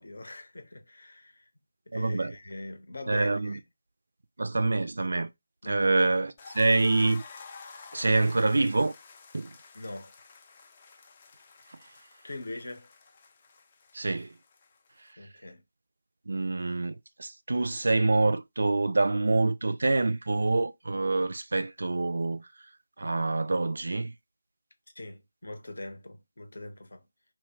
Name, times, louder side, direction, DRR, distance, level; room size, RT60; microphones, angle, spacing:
voice 1, 0.0-1.5 1.9-3.6 5.6-5.9 9.7-10.1 12.2-12.9 15.2-15.6 25.0-27.0, left 2 dB, 55° left, 0.7 m, -42 dB
voice 2, 1.9-2.3 3.1-3.6 4.4-5.3 5.6-7.2 7.9-8.9 9.3-9.5 13.9-14.3 16.3-22.5 23.0-24.1, right 3 dB, 55° right, 0.3 m, -26 dB
sound 1, 6.4-15.1, left 4 dB, 25° left, 0.4 m, -50 dB
2.9 x 2.0 x 3.3 m
figure-of-eight pair, 160°, 0 cm